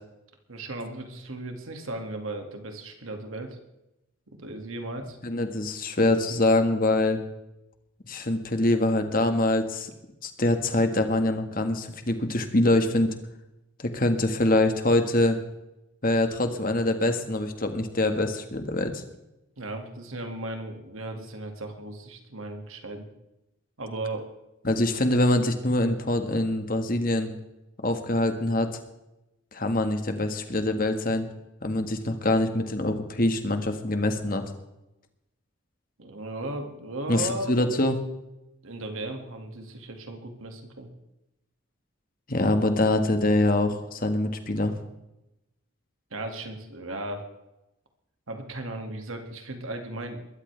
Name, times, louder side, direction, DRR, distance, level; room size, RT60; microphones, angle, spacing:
voice 1, 0.5-3.6 4.3-5.2 19.6-23.1 23.8-24.3 36.0-37.7 38.6-40.9 46.1-47.3 48.3-50.3, right 2 dB, 85° right, 4 dB, 2.3 m, -36 dB
voice 2, 5.2-7.2 8.0-9.9 10.2-13.1 13.8-15.4 16.0-19.0 24.6-27.3 27.8-28.7 29.5-31.3 31.6-34.4 37.1-38.0 42.3-44.7, left 1 dB, 45° left, 6 dB, 1.7 m, -24 dB
22.0 x 13.0 x 3.4 m, 0.92 s
head